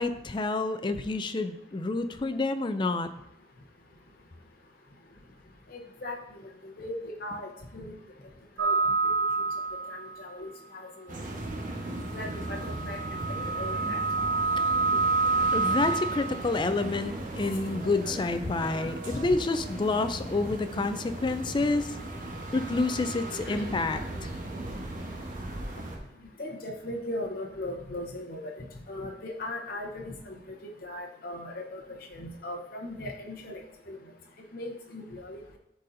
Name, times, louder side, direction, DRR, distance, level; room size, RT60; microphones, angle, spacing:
voice 1, 0.0-3.1 15.5-21.9 22.5-24.0, left 3 dB, 25° left, 10 dB, 0.4 m, -28 dB
voice 2, 5.7-7.9 8.6-8.8 9.9-11.2 12.1-13.0 13.5-14.0 23.4-23.7 26.4-28.5 28.9-30.3 30.8-31.8 32.1-33.6 33.9-34.0 34.5-35.6, left 1 dB, 55° left, 0 dB, 0.9 m, -38 dB
sound 1, 8.6-10.2 12.2-16.6 22.5-23.3, right 4 dB, 75° right, 0.5 m, -28 dB
sound 2, 11.1-26.0, right 1 dB, 50° right, 1.1 m, -37 dB
12.0 x 4.1 x 2.7 m, 0.84 s
head